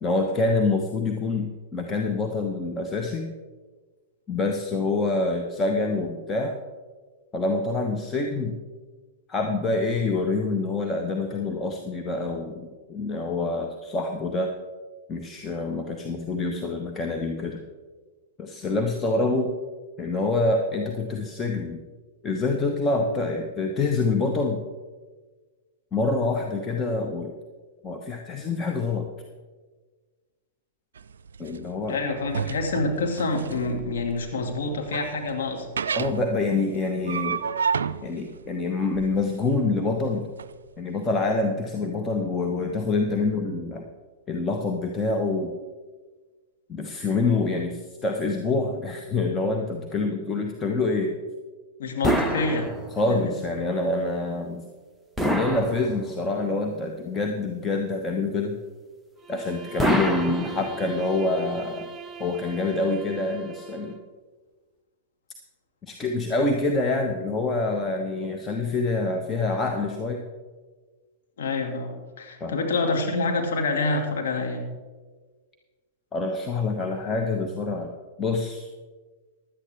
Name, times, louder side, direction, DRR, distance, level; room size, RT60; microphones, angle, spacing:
voice 1, 0.0-3.3 4.3-6.6 7.3-8.5 9.3-14.5 15.1-17.6 18.4-19.6 20.0-21.8 22.2-24.6 25.9-27.3 27.8-29.1 31.4-32.0 35.9-37.4 38.0-40.3 40.8-43.8 44.3-45.5 46.7-51.2 52.9-54.6 55.2-58.6 59.3-61.9 62.2-64.0 65.9-70.2 72.4-72.6 76.1-77.9 78.2-78.7, left 3 dB, 20° left, 2 dB, 1.1 m, -26 dB
sound 1, 31.0-40.5, right 6 dB, 75° right, 0.4 m, -32 dB
voice 2, 31.9-35.7 51.8-52.7 53.1-53.2 71.4-74.6, left 3 dB, 65° left, 2 dB, 2.1 m, -27 dB
sound 2, 52.0-53.2 55.2-56.4 59.8-61.1, equal, ahead, 1.1 m, -26 dB
Bowed string instrument, 59.2-64.1, right 7 dB, 20° right, 0.8 m, -41 dB
16.0 x 11.5 x 3.5 m, 1.4 s
hypercardioid pair, 105°, 0 cm